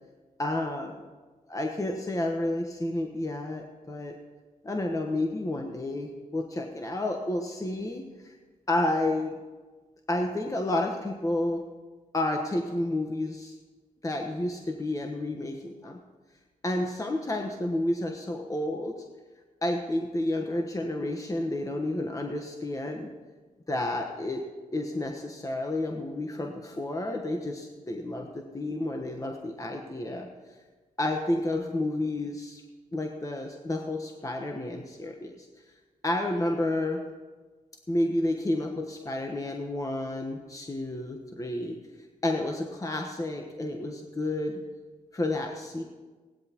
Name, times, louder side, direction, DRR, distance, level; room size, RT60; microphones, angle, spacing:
voice 1, 0.4-1.0 1.5-4.1 4.6-8.3 8.7-9.4 10.1-11.6 12.1-13.6 14.0-16.0 16.6-18.9 19.6-23.1 23.7-24.4 24.7-30.3 31.0-32.6 32.9-35.5 36.0-37.0 37.9-41.8 42.2-44.6 45.1-45.8, left 1 dB, 25° left, 2 dB, 1.2 m, -30 dB
17.0 x 12.0 x 3.0 m, 1.3 s
cardioid pair, 60°, 15 cm